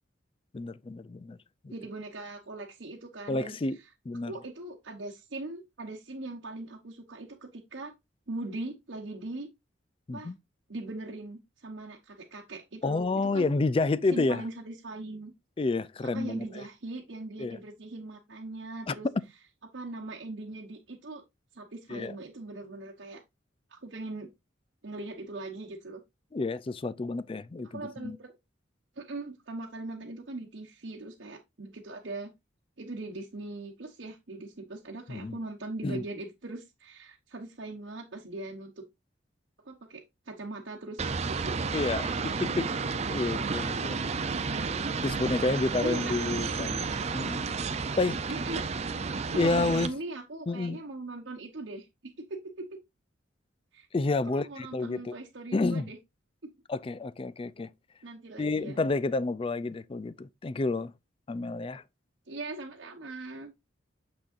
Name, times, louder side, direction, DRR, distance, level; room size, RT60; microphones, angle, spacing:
voice 1, 0.5-1.4 1.6-1.7 3.3-3.8 4.1-4.3 10.1-10.4 12.8-14.4 15.6-16.6 17.4-17.6 18.9-19.0 21.9-22.1 26.3-28.2 35.1-35.4 35.8-36.0 41.7-42.1 42.4-42.7 43.1-44.0 45.0-46.9 47.1-47.4 48.0-48.2 49.3-49.9 50.5-50.8 53.9-55.2 55.5-55.9 56.7-57.7 58.4-60.9 61.3-61.8, left 3 dB, 30° left, 0.3 m, -29 dB
voice 2, 1.7-3.6 4.3-7.9 8.3-9.5 10.1-10.3 10.7-13.5 14.1-15.3 16.1-19.1 19.7-21.2 21.5-23.2 23.7-24.3 24.8-26.0 27.6-28.3 29.0-32.3 32.8-38.8 39.6-41.5 42.1-42.4 43.9-44.7 45.8-46.1 48.3-48.6 49.3-52.8 53.7-53.9 54.2-56.0 58.0-58.8 62.3-63.5, right 2 dB, 65° right, 1.0 m, -40 dB
sound 1, 41.0-49.9, right 4 dB, 35° right, 0.5 m, -32 dB
6.8 x 6.1 x 2.5 m
head